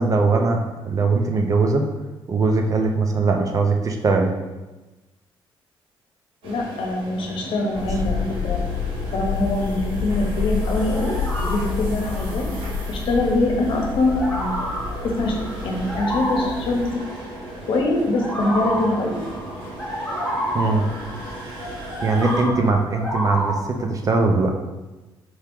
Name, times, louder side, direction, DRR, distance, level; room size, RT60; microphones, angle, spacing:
voice 1, 0.0-1.9 2.3-4.3 20.5-20.8 22.0-24.5, right 3 dB, 40° right, 3 dB, 0.5 m, -20 dB
voice 2, 6.4-8.6 9.1-12.5 12.9-14.5 15.0-15.3 15.6-16.9 17.7-19.2, left 2 dB, 70° left, 1 dB, 0.9 m, -23 dB
sound 1, 6.4-22.4, right 1 dB, 75° right, 1.2 m, -37 dB
sound 2, 7.7-16.9, left 5 dB, 40° left, 1.0 m, -29 dB
sound 3, 10.6-12.6 13.0-13.3 13.8-17.8 18.1-23.9, equal, 5° left, 1.2 m, -30 dB
4.5 x 2.9 x 3.6 m, 1.1 s
cardioid pair, 135°, 9 cm